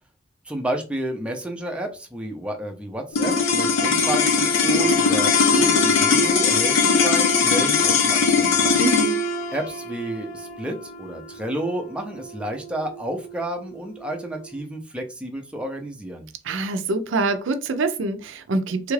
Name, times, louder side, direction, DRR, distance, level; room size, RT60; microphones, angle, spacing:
voice 1, 0.4-8.8 9.5-16.3, right 1 dB, 5° right, 0.4 m, -31 dB
sound 1, 3.1-13.6, left 4 dB, 70° left, 0.5 m, -20 dB
voice 2, 8.8-9.2 16.4-18.9, right 3 dB, 65° right, 0.5 m, -25 dB
3.3 x 2.4 x 3.2 m
head